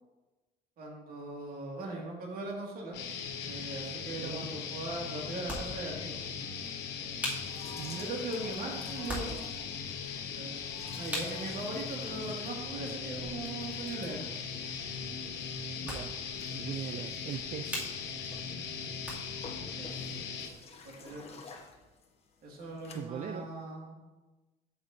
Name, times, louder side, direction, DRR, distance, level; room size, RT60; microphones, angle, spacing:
voice 1, 0.8-3.1 3.4-6.2 7.9-9.4 10.3-10.6 10.9-14.3 19.5-20.3 20.8-21.5 22.4-23.9, right 2 dB, 60° right, -1 dB, 2.0 m, -40 dB
sound 1, 2.9-20.5, left 6 dB, 85° left, 0.9 m, -39 dB
sound 2, 3.2-19.6, equal, 10° right, 2.3 m, -45 dB
sound 3, 7.4-23.0, left 4 dB, 35° left, 1.0 m, -53 dB
voice 2, 15.8-16.1 16.5-17.9 22.9-23.5, right 9 dB, 45° right, 8 dB, 0.4 m, -40 dB
8.3 x 7.1 x 2.6 m, 1.1 s
cardioid pair, 110°, 17 cm